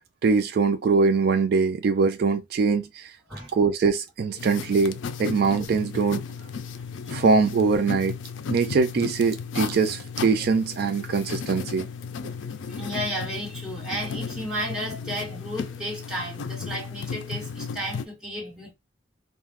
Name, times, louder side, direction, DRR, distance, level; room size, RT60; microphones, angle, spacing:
voice 1, 0.2-3.1 3.5-6.2 7.1-8.2 8.5-11.9, right 4 dB, 55° right, 0.3 m, -22 dB
sound 1, 4.4-18.1, left 5 dB, 85° left, 0.4 m, -35 dB
voice 2, 12.7-18.7, equal, 5° right, 1.4 m, -33 dB
2.4 x 2.2 x 3.3 m
head